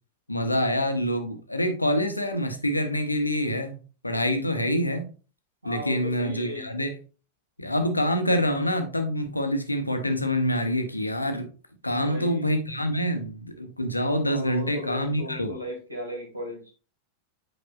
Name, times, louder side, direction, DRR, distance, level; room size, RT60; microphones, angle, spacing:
voice 1, 0.3-5.1 5.6-7.0 7.6-11.5 11.8-15.6, equal, 85° left, 6 dB, 0.9 m, -26 dB
voice 2, 5.6-6.7 11.8-12.5 14.2-16.7, left 1 dB, 85° right, 0 dB, 2.3 m, -36 dB
7.9 x 5.3 x 2.4 m, 0.35 s
figure-of-eight pair, 90°, 0 cm